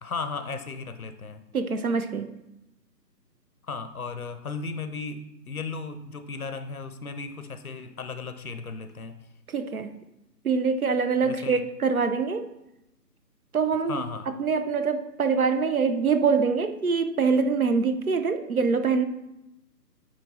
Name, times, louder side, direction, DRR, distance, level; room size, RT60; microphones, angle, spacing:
voice 1, 0.0-1.4 3.7-9.2 11.2-11.6 13.9-14.3, left 4 dB, 60° left, 9 dB, 0.7 m, -35 dB
voice 2, 1.5-2.3 9.5-9.9 10.4-12.5 13.5-19.0, right 5 dB, 60° right, 9 dB, 0.6 m, -24 dB
9.3 x 3.2 x 4.1 m, 0.90 s
figure-of-eight pair, 145°, 50 cm